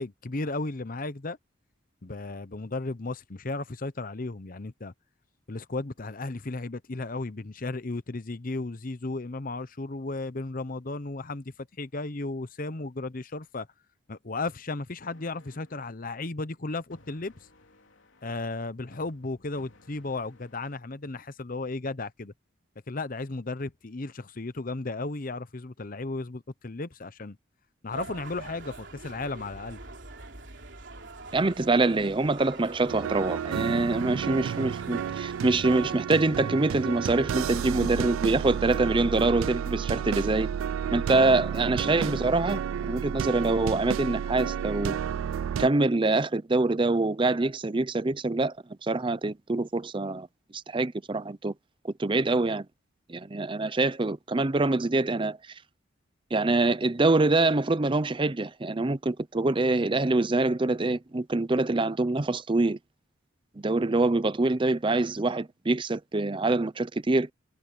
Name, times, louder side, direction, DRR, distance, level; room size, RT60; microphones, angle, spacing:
voice 1, 0.0-1.4 2.0-4.9 5.5-13.7 14.1-17.3 18.2-22.3 22.9-27.4 27.8-29.8 37.5-37.6, left 3 dB, 45° left, 0.8 m, -34 dB
sound 1, 15.0-15.9 16.9-18.5 18.9-20.8, left 2 dB, 75° left, 3.5 m, -58 dB
sound 2, 27.9-35.9, right 3 dB, 65° right, 3.4 m, -44 dB
voice 2, 31.3-40.5 40.9-45.0 45.6-48.5 48.8-50.3 50.7-51.5 51.8-52.7 53.1-55.4 56.3-62.8 63.6-67.3, right 2 dB, 25° right, 0.6 m, -25 dB
sound 3, 32.9-45.7, right 8 dB, 85° right, 0.3 m, -31 dB
head